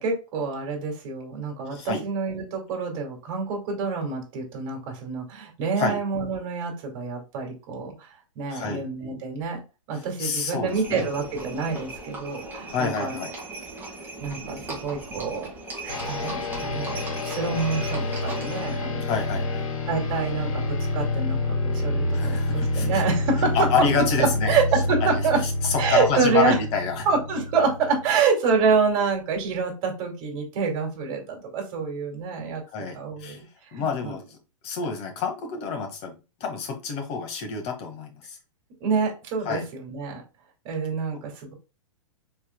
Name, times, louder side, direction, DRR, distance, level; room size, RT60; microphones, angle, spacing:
voice 1, 0.0-9.6 9.9-13.2 14.2-15.5 15.8-19.1 19.9-20.6 20.9-23.7 24.0-25.4 25.8-26.6 27.1-33.4 33.7-34.1 38.8-40.2 40.6-41.5, right 5 dB, 45° right, 1 dB, 2.3 m, -27 dB
voice 2, 1.7-2.0 5.8-6.0 8.5-8.8 9.9-11.0 12.7-13.3 19.0-19.7 22.1-23.0 23.5-24.6 25.0-27.1 32.7-33.4 33.7-34.4 34.6-36.1 36.4-38.4 39.4-39.7 41.1-41.2, left 6 dB, 35° left, 4 dB, 1.6 m, -28 dB
Livestock farm animals working animals, 10.7-18.8, right 2 dB, 10° right, 1.8 m, -38 dB
sound 1, 15.9-28.1, left 2 dB, 75° left, 2.4 m, -28 dB
4.7 x 4.2 x 2.2 m, 0.30 s
hypercardioid pair, 130°, 17 cm